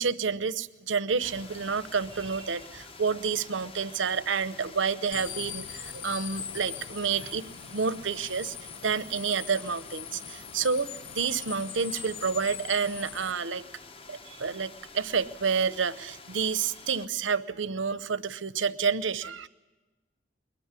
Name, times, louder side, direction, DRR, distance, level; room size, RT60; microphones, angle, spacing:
voice 1, 0.0-8.5 8.8-13.6 14.1-19.5, right 5 dB, 90° right, 14 dB, 0.8 m, -29 dB
sound 1, 1.2-17.1, left 4 dB, 30° left, 0.9 m, -48 dB
sound 2, 5.1-13.3, left 9 dB, 85° left, 0.9 m, -42 dB
22.0 x 20.5 x 9.7 m, 1.1 s
head